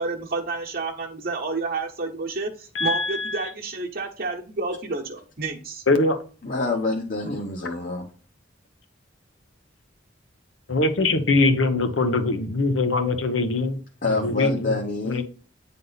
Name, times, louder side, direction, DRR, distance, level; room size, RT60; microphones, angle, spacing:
voice 1, 0.0-5.8, right 3 dB, 50° right, 1.0 m, -30 dB
voice 2, 2.7-3.5 5.9-6.2 10.7-13.8 14.1-14.8 15.0-15.2, left 3 dB, 75° left, 1.0 m, -22 dB
voice 3, 6.4-8.1 14.0-15.2, left 3 dB, 45° left, 1.0 m, -26 dB
9.2 x 3.7 x 4.0 m
head